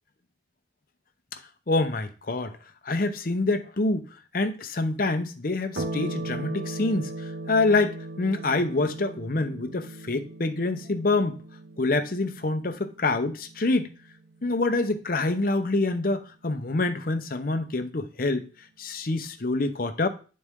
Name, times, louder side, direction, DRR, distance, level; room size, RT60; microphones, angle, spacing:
voice 1, 1.7-2.6 2.8-4.1 4.3-11.4 11.8-13.9 14.4-18.4 18.8-20.1, left 2 dB, 50° left, 0.8 m, -26 dB
sound 1, 5.7-14.6, right 2 dB, 85° right, 1.7 m, -38 dB
9.4 x 4.3 x 3.6 m
head